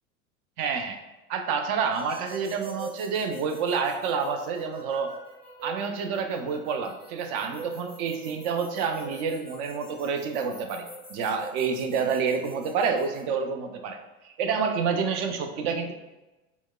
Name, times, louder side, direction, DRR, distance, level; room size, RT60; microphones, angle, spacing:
voice 1, 0.6-1.0 1.3-5.1 5.6-10.8 11.1-14.0 14.2-15.9, right 5 dB, 40° right, 6 dB, 0.5 m, -28 dB
sound 1, 1.9-13.2, right 3 dB, 20° right, 1.2 m, -44 dB
4.5 x 2.1 x 2.2 m, 1.1 s
figure-of-eight pair, 80°, 42 cm